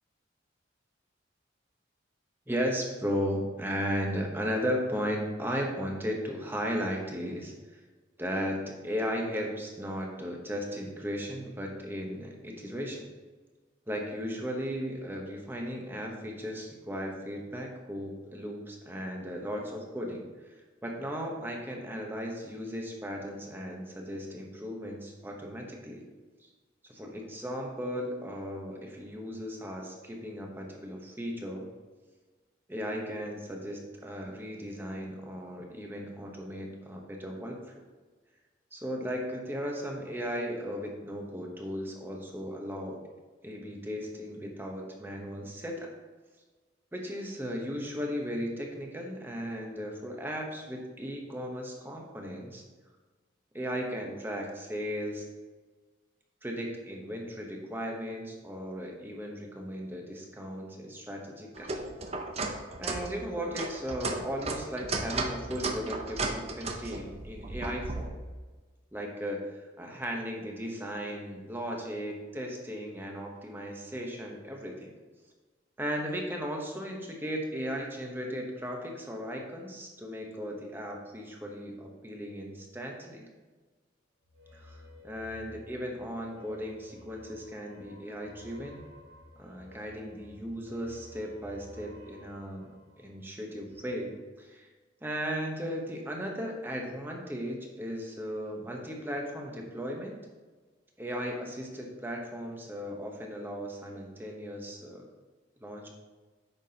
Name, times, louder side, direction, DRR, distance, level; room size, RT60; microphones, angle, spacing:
voice 1, 2.5-7.8 8.2-13.1 13.9-20.2 20.8-26.0 26.4-26.5 26.8-31.7 32.7-37.8 38.7-43.0 43.4-45.9 46.9-52.6 53.5-55.3 56.4-61.9 62.8-68.1 68.9-69.4 69.8-74.9 75.8-83.2 84.5-88.8 89.4-92.7 93.0-94.7 95.0-100.1 101.0-105.0 105.6-105.9, equal, 10° right, 0 dB, 0.9 m, -36 dB
sound 1, 61.6-68.1, right 3 dB, 30° right, 0.6 m, -35 dB
sound 2, 84.2-94.0, left 2 dB, 65° right, 1.2 m, -53 dB
8.9 x 6.0 x 2.8 m, 1.3 s
head